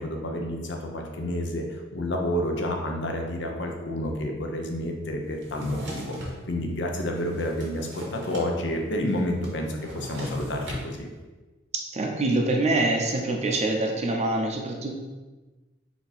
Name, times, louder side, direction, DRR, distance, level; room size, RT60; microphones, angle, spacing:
voice 1, 0.0-6.1 6.5-11.1, left 1 dB, 70° left, 2 dB, 0.6 m, -29 dB
Drawer open or close, 5.4-6.4 7.0-8.5 8.7-8.8 9.1-10.9, equal, 85° right, 1.2 m, -37 dB
voice 2, 11.9-14.9, right 2 dB, 35° right, 1 dB, 0.6 m, -25 dB
4.3 x 2.8 x 4.1 m, 1.2 s
head